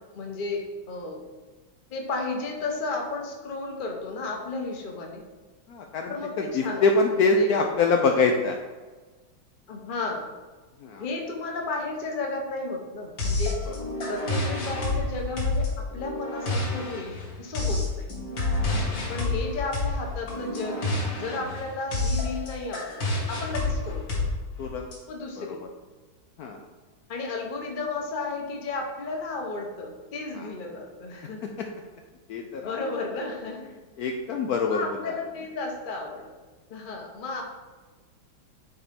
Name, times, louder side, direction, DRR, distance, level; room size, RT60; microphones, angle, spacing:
voice 1, 0.1-1.2 1.9-5.2 6.1-6.9 7.2-7.5 9.7-10.3 11.0-13.6 14.1-15.7 15.9-18.1 19.1-20.9 21.2-23.0 23.3-24.3 25.1-25.6 27.1-31.4 32.6-33.7 34.6-36.3 36.7-37.4, left 3 dB, 40° left, 1 dB, 0.7 m, -33 dB
voice 2, 5.7-8.6 10.8-11.0 13.7-13.8 18.7-18.8 24.6-24.9 25.4-25.6 26.4-26.6 30.3-30.5 31.6-31.7 32.3-32.8 34.0-35.2, left 4 dB, 85° left, 2 dB, 0.8 m, -25 dB
sound 1, 13.2-25.0, left 2 dB, 65° left, 2.4 m, -29 dB
6.0 x 4.3 x 5.1 m, 1.3 s
omnidirectional pair, 2.2 m